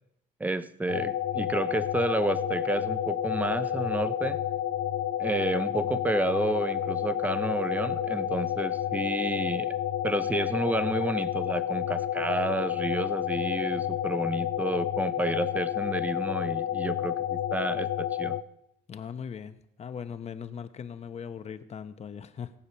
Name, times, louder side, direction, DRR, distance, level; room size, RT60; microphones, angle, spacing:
voice 1, 0.4-4.4 5.2-9.7 10.0-18.4, right 2 dB, 10° right, 13 dB, 0.6 m, -30 dB
sound 1, 0.9-18.4, left 11 dB, 85° left, 0.8 m, -30 dB
sound 2, 2.3-4.3 6.3-8.3, right 9 dB, 40° right, 1.4 m, -42 dB
voice 2, 18.9-22.5, left 7 dB, 40° left, 11 dB, 1.0 m, -39 dB
18.0 x 6.7 x 5.6 m, 0.77 s
cardioid pair, 110°, 17 cm